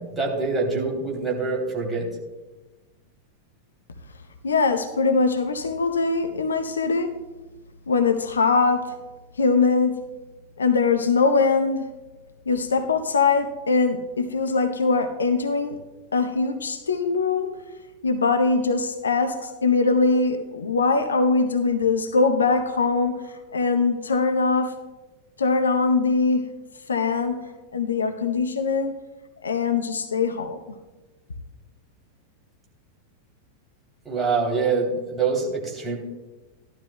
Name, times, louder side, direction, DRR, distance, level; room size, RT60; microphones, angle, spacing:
voice 1, 0.0-2.1 34.0-36.0, right 4 dB, 10° right, -3 dB, 2.9 m, -25 dB
voice 2, 4.4-7.1 7.9-8.9 9.4-10.0 10.6-11.9 12.5-15.8 16.1-17.5 18.0-24.7 25.4-26.4 26.9-27.4 27.7-28.9 29.4-30.6, left 4 dB, 70° left, 7 dB, 0.7 m, -22 dB
15.5 x 12.0 x 2.2 m, 1.2 s
figure-of-eight pair, 90°, 0 cm